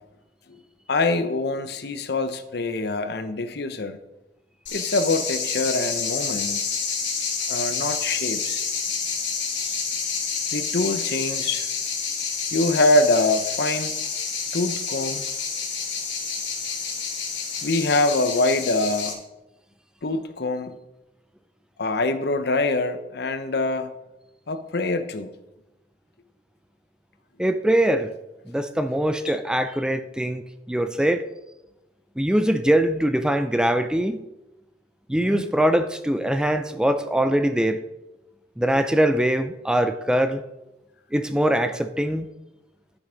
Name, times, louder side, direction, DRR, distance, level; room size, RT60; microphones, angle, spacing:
voice 1, 0.9-4.0 4.7-6.6 7.5-8.6 10.5-11.7 12.5-13.9 14.5-15.2 17.6-19.2 20.0-20.8 21.8-23.9 24.5-25.3 29.3-29.4 35.1-35.4, left 2 dB, 60° left, 10 dB, 0.8 m, -24 dB
sound 1, 4.7-19.1, left 5 dB, 85° left, 3.3 m, -29 dB
voice 2, 27.4-28.1 28.5-31.2 32.2-34.2 35.1-37.8 38.6-40.4 41.1-42.3, right 1 dB, 5° right, 10 dB, 0.5 m, -22 dB
12.5 x 7.0 x 5.1 m, 0.98 s
head